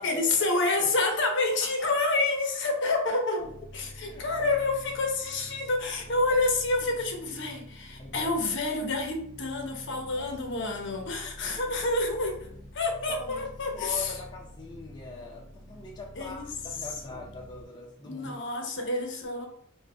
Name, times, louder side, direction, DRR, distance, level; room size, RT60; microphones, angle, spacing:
voice 1, 0.0-12.4 12.7-14.1 16.2-16.5 18.0-19.5, left 2 dB, 55° left, 3 dB, 0.8 m, -28 dB
voice 2, 1.8-2.2 4.1-4.6 6.8-6.9 8.0-8.3 9.9-10.3 10.6-11.1 11.3-11.8 12.5-12.6 13.1-13.5 13.7-18.3, left 4 dB, 20° left, -2 dB, 0.5 m, -43 dB
sound 1, 3.4-17.6, equal, 35° right, 1.0 m, -47 dB
4.0 x 2.2 x 3.7 m, 0.65 s
head